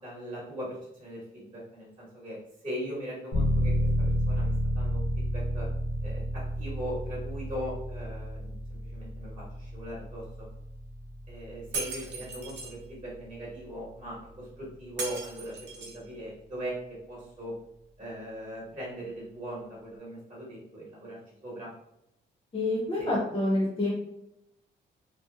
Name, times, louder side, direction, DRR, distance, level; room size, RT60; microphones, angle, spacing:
voice 1, 0.0-5.7 6.0-10.5 11.3-17.6 18.0-21.7 23.0-23.1, equal, 30° right, -6 dB, 1.1 m, -40 dB
sound 1, 3.3-13.9, equal, 65° left, 0.7 m, -31 dB
Shatter, 11.7-12.7 15.0-16.0, right 3 dB, 60° right, 0.7 m, -37 dB
voice 2, 22.5-23.9, left 1 dB, 30° left, -5 dB, 0.7 m, -27 dB
2.7 x 2.1 x 2.3 m, 0.80 s
cardioid pair, 110°, 19 cm